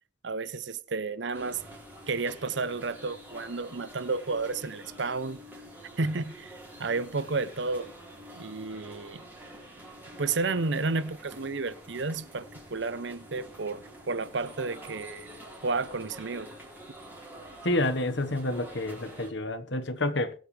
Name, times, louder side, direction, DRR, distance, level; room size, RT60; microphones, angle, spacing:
voice 1, 0.2-1.6 2.1-5.4 6.0-7.9 8.3-9.2 10.2-15.3 15.6-16.5, right 3 dB, 65° right, 0.7 m, -32 dB
sound 1, 1.3-19.3, right 1 dB, 10° right, 4.1 m, -47 dB
voice 2, 17.6-20.3, left 2 dB, 65° left, 1.4 m, -29 dB
22.0 x 8.0 x 3.3 m
head